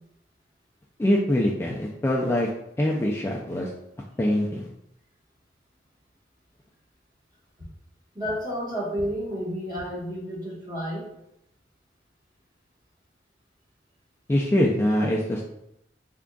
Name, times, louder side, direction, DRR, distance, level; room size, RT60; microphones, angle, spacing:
voice 1, 1.0-2.5 2.8-3.7 4.2-4.7 14.3-15.4, left 1 dB, 15° left, -3 dB, 0.3 m, -23 dB
voice 2, 8.1-11.1, equal, 25° right, -6 dB, 1.3 m, -31 dB
3.7 x 3.5 x 2.3 m, 0.80 s
head